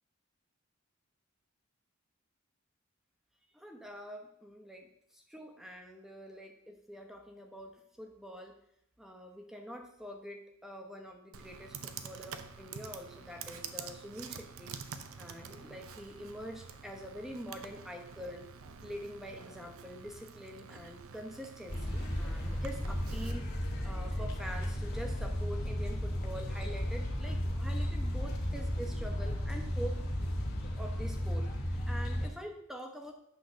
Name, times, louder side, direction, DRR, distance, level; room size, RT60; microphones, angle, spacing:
voice 1, 3.5-8.5 9.0-14.8 15.2-18.5 18.8-23.4 23.8-30.0 30.7-33.1, equal, ahead, 3 dB, 0.9 m, -45 dB
Computer keyboard, 11.3-23.3, right 6 dB, 75° right, 0.6 m, -48 dB
sound 1, 21.7-32.3, equal, 45° left, 1.5 m, -34 dB
8.7 x 3.9 x 6.4 m, 0.74 s
head